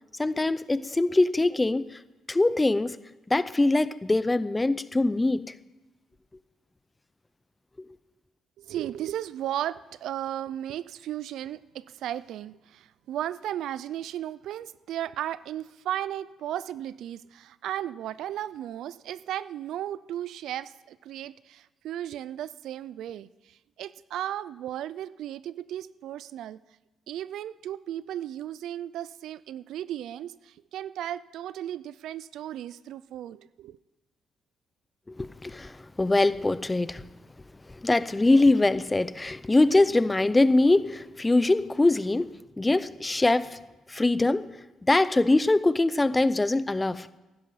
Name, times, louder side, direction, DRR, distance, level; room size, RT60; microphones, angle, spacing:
voice 1, 0.2-2.0 2.3-3.0 3.3-5.5 35.1-37.0 37.7-43.6 43.9-44.5 44.8-47.1, left 2 dB, 15° left, 0.6 m, -23 dB
voice 2, 8.6-26.6 27.1-33.8, right 11 dB, 80° right, 0.4 m, -35 dB
15.5 x 11.5 x 5.8 m
cardioid pair, 90°, 0 cm